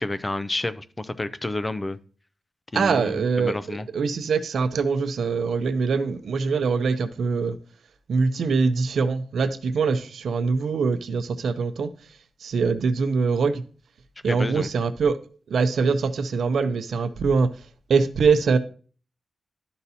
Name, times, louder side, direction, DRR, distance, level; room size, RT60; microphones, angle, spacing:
voice 1, 0.0-2.0 2.7-3.9 14.2-14.7, left 2 dB, 20° left, 0.4 m, -30 dB
voice 2, 2.7-3.5 3.9-7.6 8.1-11.9 12.4-13.6 14.2-15.2 15.5-17.5 17.9-18.6, right 5 dB, 90° right, 0.5 m, -23 dB
12.0 x 4.1 x 2.7 m
wide cardioid pair, 155°, 0 cm